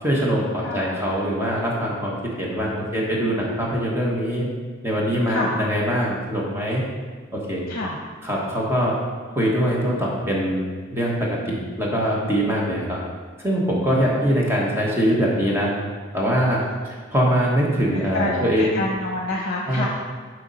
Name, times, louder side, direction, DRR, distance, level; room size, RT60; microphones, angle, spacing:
voice 1, 0.0-4.5 4.8-6.8 7.3-7.6 8.2-8.9 9.3-10.6 10.9-13.0 13.4-15.7 16.1-16.6 17.1-18.8 19.7-19.9, equal, 15° right, -4 dB, 1.3 m, -22 dB
voice 2, 0.6-1.1 2.6-3.4 5.3-5.5 7.7-8.0 17.9-19.9, left 1 dB, 50° left, -3 dB, 1.0 m, -29 dB
7.0 x 4.6 x 5.5 m, 1.5 s
head